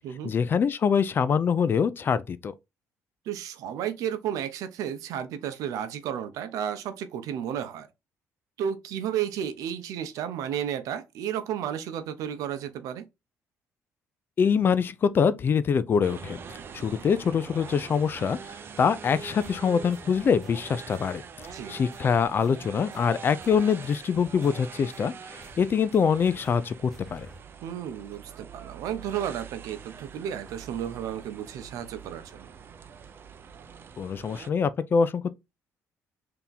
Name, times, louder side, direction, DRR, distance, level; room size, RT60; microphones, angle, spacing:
voice 1, 0.2-2.5 14.4-16.4 16.7-18.4 18.8-21.2 21.7-27.3 34.0-35.3, left 6 dB, 40° left, 0.4 m, -24 dB
voice 2, 3.3-7.9 8.6-13.1 21.5-21.8 27.6-32.5, right 9 dB, 85° right, 0.6 m, -33 dB
sound 1, 16.0-34.5, right 6 dB, 40° right, 0.5 m, -44 dB
sound 2, 19.4-19.6 19.9-21.0 21.4-21.6 21.9-23.6 23.9-25.0 25.4-25.7 25.9-27.4, left 1 dB, 5° left, 1.1 m, -53 dB
3.4 x 2.9 x 3.9 m
cardioid pair, 120°, 6 cm